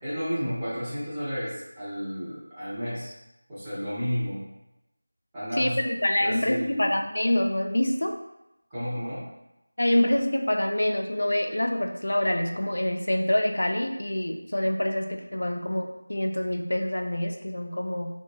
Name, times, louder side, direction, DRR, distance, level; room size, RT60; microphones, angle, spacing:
voice 1, 0.0-3.1 3.5-4.5 5.3-5.8 6.2-7.0 8.7-9.3, equal, 5° right, -15 dB, 0.7 m, -32 dB
voice 2, 5.6-8.2 9.8-18.1, left 1 dB, 70° left, 4 dB, 0.3 m, -26 dB
2.8 x 2.2 x 2.3 m, 0.91 s
figure-of-eight pair, 175°, 0 cm